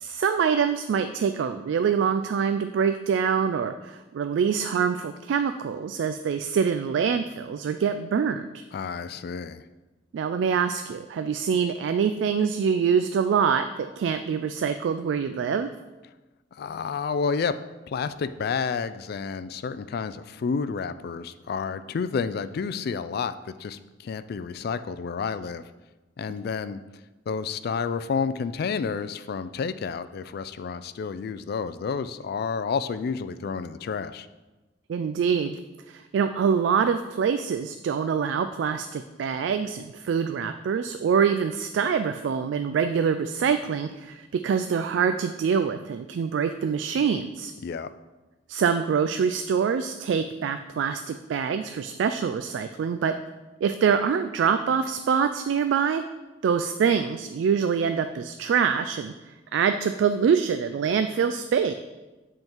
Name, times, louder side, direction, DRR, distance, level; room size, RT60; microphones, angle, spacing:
voice 1, 0.0-8.6 10.1-15.7 34.9-35.6 35.9-47.5 48.5-53.2 53.6-56.0 56.4-61.7, right 6 dB, 80° right, 9 dB, 0.3 m, -25 dB
voice 2, 8.7-9.7 16.5-17.6 17.9-25.7 26.2-26.8 27.3-34.3 47.6-47.9, left 5 dB, 60° left, 13 dB, 0.3 m, -30 dB
7.8 x 3.7 x 4.5 m, 1.1 s
head